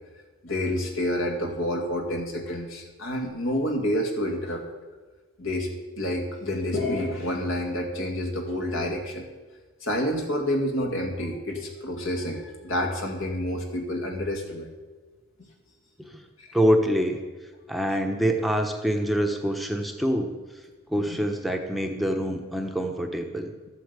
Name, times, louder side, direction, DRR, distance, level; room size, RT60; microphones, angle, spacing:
voice 1, 0.4-4.6 5.4-5.7 6.0-9.3 9.8-14.7, left 1 dB, 65° left, 2 dB, 2.3 m, -28 dB
voice 2, 16.5-17.2 17.7-20.6 20.9-23.5, equal, ahead, 3 dB, 1.0 m, -25 dB
13.0 x 8.5 x 8.3 m, 1.3 s
head